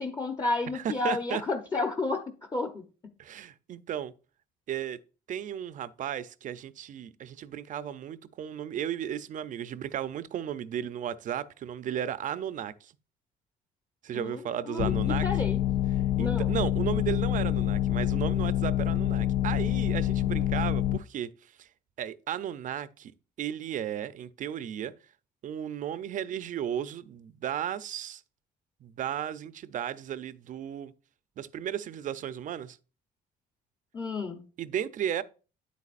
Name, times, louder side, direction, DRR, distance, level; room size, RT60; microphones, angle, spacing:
voice 1, 0.0-2.8 14.1-15.6 16.2-16.6 33.9-34.5, left 3 dB, 20° left, 0.9 m, -32 dB
voice 2, 0.7-1.4 3.2-4.1 4.7-5.0 5.3-12.9 14.0-15.3 16.2-21.3 21.6-21.7 22.0-23.1 23.4-24.9 25.4-28.2 28.8-30.9 31.4-32.8 34.6-35.2, right 10 dB, 50° right, 0.6 m, -34 dB
sound 1, 14.8-21.0, left 12 dB, 60° left, 0.4 m, -27 dB
9.4 x 8.2 x 2.5 m
cardioid pair, 110°, 17 cm